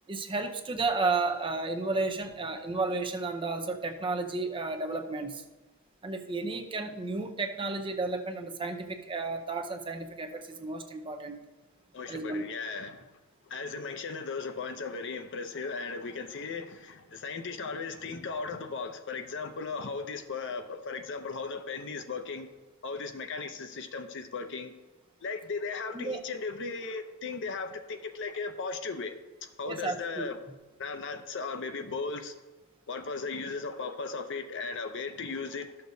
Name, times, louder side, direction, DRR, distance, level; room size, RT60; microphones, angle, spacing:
voice 1, 0.1-5.4 6.0-11.4 12.1-12.5 25.9-26.2 29.6-30.3, right 3 dB, 25° right, 5 dB, 0.6 m, -32 dB
voice 2, 11.9-13.0 13.5-22.5 22.8-24.7 25.2-29.1 29.4-30.4 30.8-32.3 32.9-35.7, left 4 dB, 55° left, 7 dB, 0.7 m, -36 dB
12.5 x 6.7 x 2.7 m, 1.2 s
head